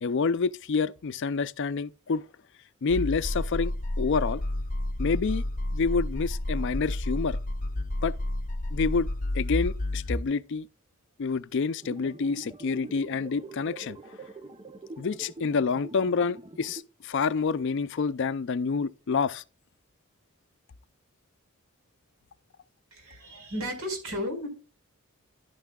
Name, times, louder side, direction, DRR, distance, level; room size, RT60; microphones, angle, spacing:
voice 1, 0.0-2.2 2.8-4.4 5.0-5.4 5.7-7.4 8.0-8.2 8.7-9.1 9.3-10.7 11.2-14.2 15.0-19.4, left 5 dB, 55° left, 0.4 m, -28 dB
sound 1, 2.9-10.2, left 1 dB, 35° left, 0.9 m, -30 dB
sound 2, 11.8-16.8, right 2 dB, 25° right, 0.6 m, -45 dB
voice 2, 22.9-24.5, equal, 85° right, 4.7 m, -34 dB
11.5 x 9.3 x 2.3 m
head